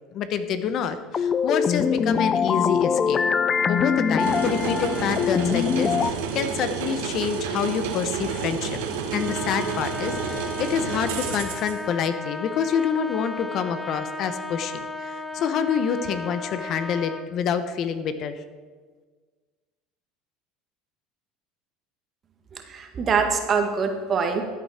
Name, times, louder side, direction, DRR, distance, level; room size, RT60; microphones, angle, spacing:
voice 1, 0.1-3.2 3.7-8.8 9.1-18.4, left 7 dB, 55° left, 11 dB, 0.9 m, -27 dB
sound 1, 1.1-6.1, left 6 dB, 30° left, 0.4 m, -23 dB
sound 2, 4.2-11.7, right 6 dB, 85° right, 1.5 m, -30 dB
Trumpet, 9.1-17.3, left 2 dB, ahead, 0.8 m, -35 dB
voice 2, 22.5-24.4, right 5 dB, 35° right, 5 dB, 1.7 m, -24 dB
14.0 x 8.2 x 4.4 m, 1.5 s
supercardioid pair, 100°, 0 cm